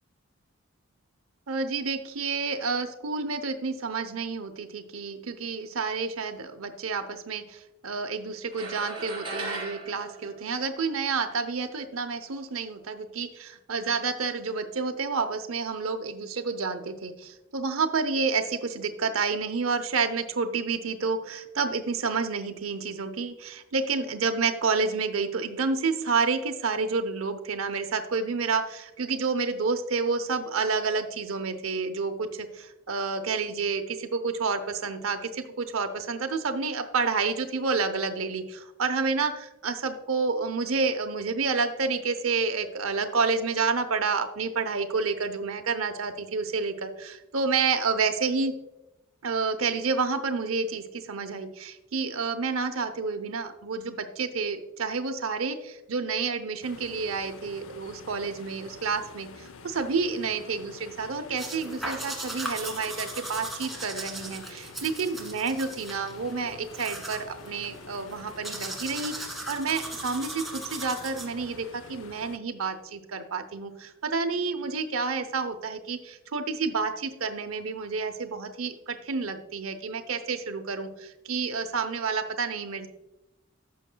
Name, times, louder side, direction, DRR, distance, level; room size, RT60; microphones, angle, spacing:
voice 1, 1.5-48.5 49.2-82.9, right 4 dB, 85° right, 8 dB, 0.7 m, -29 dB
sound 1, 8.5-11.1, right 2 dB, 25° right, 3.2 m, -37 dB
sound 2, 56.6-72.4, left 5 dB, 80° left, 0.5 m, -47 dB
sound 3, 61.4-71.6, right 1 dB, ahead, 1.5 m, -38 dB
14.5 x 6.4 x 2.2 m, 0.94 s
head